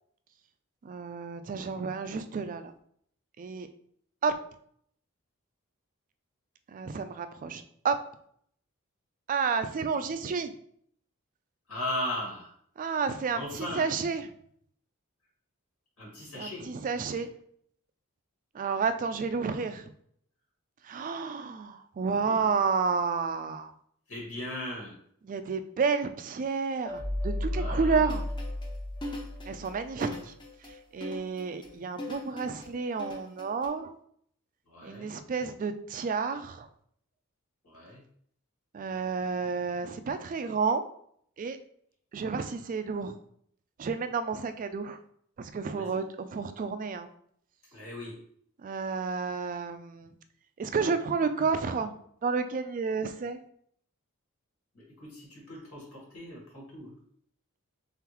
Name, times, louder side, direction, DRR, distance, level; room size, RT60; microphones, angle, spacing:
voice 1, 0.8-2.7 3.4-3.7 4.2-4.4 6.7-7.9 9.3-10.5 12.8-14.3 16.3-17.3 18.5-19.9 20.8-23.7 25.2-28.3 29.5-30.3 30.7-34.0 34.8-36.7 38.7-40.8 41.4-41.6 42.1-43.2 43.8-45.0 45.4-47.1 48.6-50.1 50.6-51.9 52.2-53.4, right 5 dB, 40° right, 10 dB, 0.3 m, -31 dB
voice 2, 11.7-12.5 13.3-13.9 16.0-16.7 19.5-19.6 22.2-22.5 24.1-25.0 27.5-28.1 34.7-35.1 37.6-38.0 45.7-46.0 47.7-48.2 54.7-56.9, left 1 dB, 80° left, -4 dB, 1.8 m, -38 dB
sound 1, 26.8-30.0, left 1 dB, 45° left, 0.9 m, -34 dB
sound 2, 28.1-33.7, left 1 dB, 20° left, 0.7 m, -41 dB
3.8 x 3.6 x 2.9 m, 0.65 s
head